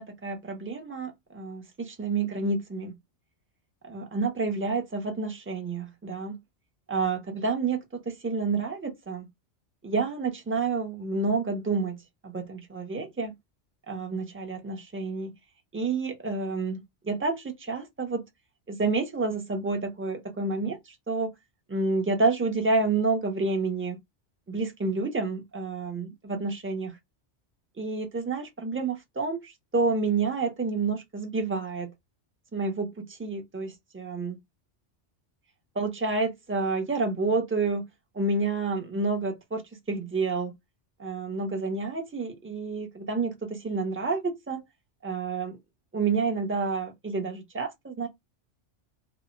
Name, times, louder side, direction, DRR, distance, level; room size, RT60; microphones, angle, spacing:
voice 1, 0.0-2.9 3.8-6.4 6.9-9.3 9.8-12.0 12.2-13.3 13.9-15.3 15.7-18.2 18.7-21.3 21.7-24.0 24.5-26.9 27.8-31.9 32.5-34.4 35.8-37.9 38.1-39.6 39.9-40.5 41.0-44.6 45.0-45.6 45.9-48.1, right 3 dB, 20° right, 0.4 m, -29 dB
2.1 x 2.0 x 3.7 m
omnidirectional pair, 1.2 m